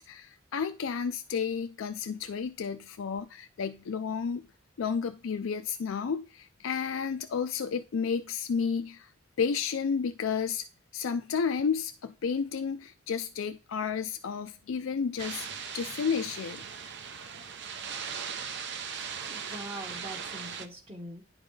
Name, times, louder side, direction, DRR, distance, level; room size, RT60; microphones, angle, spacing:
voice 1, 0.0-4.5 4.8-9.1 9.4-10.7 10.9-15.5 15.7-16.7, left 6 dB, 85° left, 0.4 m, -31 dB
sound 1, 15.2-20.7, right 7 dB, 60° right, 0.6 m, -39 dB
voice 2, 19.3-21.2, right 1 dB, 30° right, 1.1 m, -43 dB
10.0 x 4.0 x 3.2 m
head